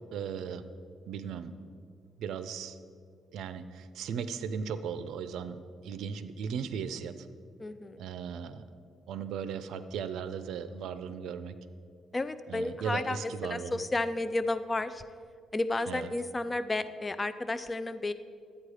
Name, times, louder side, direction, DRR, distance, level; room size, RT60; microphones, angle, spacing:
voice 1, 0.1-0.6 1.1-1.5 2.2-2.8 3.3-7.3 8.0-8.7 9.1-11.6 12.5-13.8 15.9-16.1, right 7 dB, 80° right, 12 dB, 0.6 m, -37 dB
voice 2, 7.6-8.0 12.1-15.0 15.5-18.1, left 2 dB, 25° left, 12 dB, 0.5 m, -32 dB
11.5 x 8.7 x 4.9 m, 2.2 s
cardioid pair, 90°, 0 cm